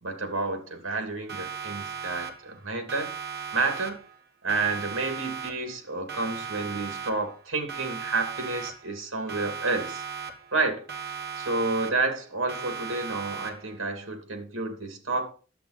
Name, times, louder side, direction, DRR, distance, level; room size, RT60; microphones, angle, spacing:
voice 1, 0.0-3.1 3.5-4.0 4.4-10.0 10.5-10.9 11.4-15.3, right 3 dB, 70° right, 2.6 m, -30 dB
Siren, 1.3-2.6 2.9-4.2 4.5-5.8 6.1-7.4 7.7-9.0 9.3-10.6 10.9-12.2 12.5-13.8, right 6 dB, 50° right, 1.9 m, -37 dB
11.0 x 7.7 x 4.3 m
head